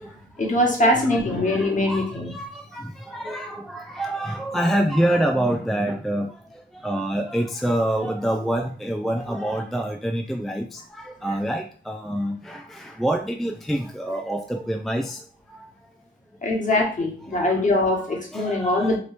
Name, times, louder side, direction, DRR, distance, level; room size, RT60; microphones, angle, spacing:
voice 1, 0.4-2.3 16.4-19.0, left 1 dB, 35° left, 1.3 m, -22 dB
voice 2, 1.5-15.7 17.3-17.4 17.9-19.0, right 1 dB, ahead, 0.4 m, -27 dB
2.9 x 2.6 x 3.3 m
supercardioid pair, 50°, 21 cm